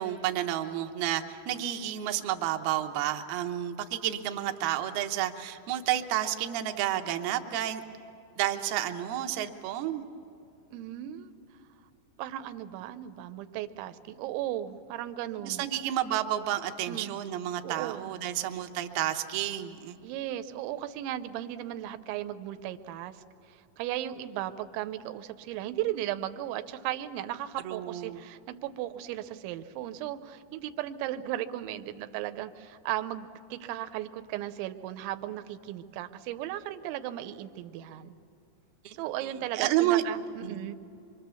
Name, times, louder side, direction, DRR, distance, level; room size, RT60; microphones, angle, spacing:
voice 1, 0.0-7.8 8.4-10.0 15.4-19.9 27.7-28.2 38.9-39.0 39.5-40.0 40.4-40.6, right 12 dB, 70° right, 6 dB, 2.6 m, -30 dB
voice 2, 10.7-11.3 12.2-15.7 16.9-17.2 17.6-18.1 20.0-23.2 23.5-38.2 38.9-40.7, right 13 dB, 90° right, 11 dB, 3.1 m, -36 dB
25.0 x 23.5 x 6.9 m, 2.7 s
omnidirectional pair, 5.2 m